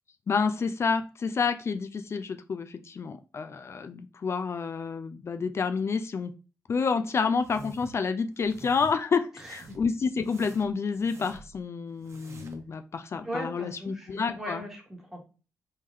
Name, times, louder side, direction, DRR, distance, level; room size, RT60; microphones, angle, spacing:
voice 1, 0.3-6.3 6.7-14.6, left 5 dB, 45° left, 9 dB, 0.4 m, -29 dB
sound 1, 7.4-8.0 8.4-8.9 9.4-9.9 10.2-11.6 12.0-12.7, right 2 dB, 50° right, 0.9 m, -47 dB
voice 2, 13.2-15.2, equal, 5° right, -1 dB, 1.6 m, -38 dB
3.6 x 3.2 x 2.7 m, 0.34 s
cardioid pair, 65°, 6 cm